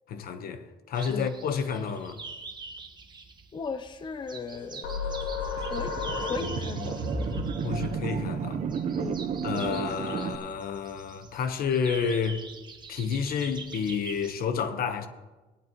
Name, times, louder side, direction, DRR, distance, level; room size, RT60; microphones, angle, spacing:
voice 1, 0.1-2.2 7.6-8.6 9.4-12.4 12.9-15.1, left 6 dB, 60° left, 1.1 m, -30 dB
sound 1, 0.9-14.3, right 4 dB, 25° right, 1.3 m, -45 dB
voice 2, 3.5-4.9 5.5-7.0 9.0-9.3, left 5 dB, 30° left, 0.6 m, -37 dB
sound 2, 4.8-10.1, left 3 dB, 90° left, 2.2 m, -35 dB
sound 3, 5.6-10.3, right 7 dB, 45° right, 0.9 m, -32 dB
18.0 x 11.0 x 3.1 m
cardioid pair, 110°, 17 cm